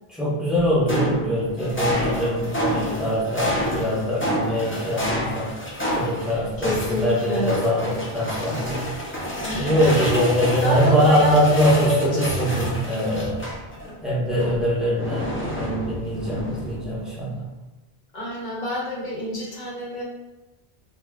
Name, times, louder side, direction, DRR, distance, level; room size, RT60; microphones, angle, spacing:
voice 1, 0.2-5.5 5.9-8.8 9.5-13.4 14.0-17.4, equal, ahead, -8 dB, 0.7 m, -23 dB
sound 1, 0.5-13.9 14.3-17.0, equal, 20° left, 0.4 m, -29 dB
voice 2, 6.3-7.6 9.4-12.3 13.8-14.0 18.1-20.0, left 1 dB, 50° left, -4 dB, 0.8 m, -27 dB
2.3 x 2.2 x 3.3 m, 1.1 s
omnidirectional pair, 1.0 m